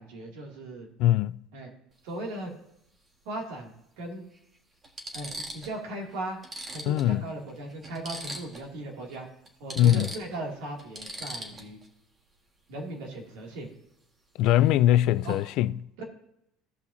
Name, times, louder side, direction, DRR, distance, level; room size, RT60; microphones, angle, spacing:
voice 1, 0.0-0.9 1.5-1.7 2.0-2.5 3.3-4.2 5.1-6.4 6.7-9.3 9.6-11.8 12.7-13.7 15.2-15.4 16.0-16.1, right 2 dB, 85° right, 2.3 m, -37 dB
voice 2, 1.0-1.4 6.9-7.2 9.8-10.1 14.4-15.7, left 13 dB, 65° left, 0.3 m, -21 dB
sound 1, 1.9-2.1 3.6-3.7 4.3-4.4 4.8-5.8 6.1-6.2 6.4-8.7 9.0-9.2 9.5-11.9 14.5-14.7 15.0-15.4, right 1 dB, 25° right, 1.5 m, -41 dB
16.0 x 5.6 x 2.6 m
supercardioid pair, 115°, 0 cm